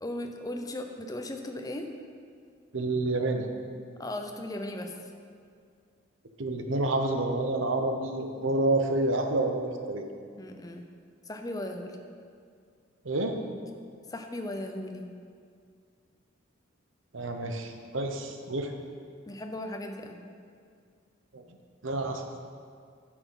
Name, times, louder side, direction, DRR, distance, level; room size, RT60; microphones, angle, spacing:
voice 1, 0.0-1.9 4.0-5.1 10.4-10.9 11.2-12.0 14.1-15.1 19.3-20.2, left 1 dB, 20° left, 4 dB, 0.7 m, -37 dB
voice 2, 2.7-3.5 6.4-10.0 13.0-13.4 17.1-18.7 21.3-21.4 21.8-22.2, right 2 dB, 75° right, 5 dB, 0.9 m, -28 dB
9.6 x 6.1 x 5.6 m, 2.2 s
head